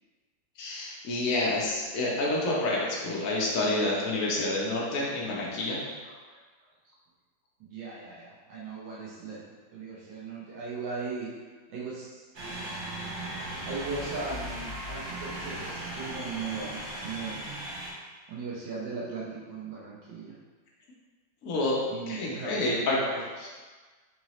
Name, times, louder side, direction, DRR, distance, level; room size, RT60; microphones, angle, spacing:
voice 1, 0.6-5.8 21.4-22.9, left 2 dB, 60° left, -4 dB, 0.9 m, -28 dB
voice 2, 6.0-6.4 6.8-6.9 7.6-9.4 9.7-11.3 11.7-12.3 13.7-17.4 18.3-20.4 21.9-23.2, right 4 dB, 70° right, -6 dB, 1.2 m, -38 dB
sound 1, 12.3-17.9, right 1 dB, 85° right, 0.6 m, -37 dB
3.8 x 2.6 x 3.0 m, 1.4 s
omnidirectional pair, 2.2 m